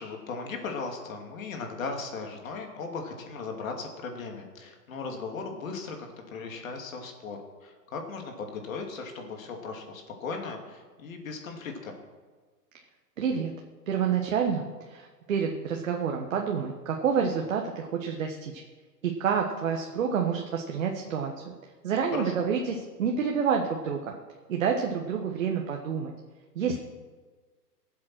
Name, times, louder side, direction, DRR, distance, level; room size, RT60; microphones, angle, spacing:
voice 1, 0.0-11.9 22.1-22.5, left 4 dB, 55° left, 3 dB, 2.7 m, -37 dB
voice 2, 13.2-13.5 13.9-18.6 19.0-21.3 21.8-24.0 24.5-26.1 26.5-26.8, right 6 dB, 50° right, 2 dB, 1.4 m, -28 dB
18.0 x 7.6 x 6.1 m, 1.4 s
hypercardioid pair, 160°, 49 cm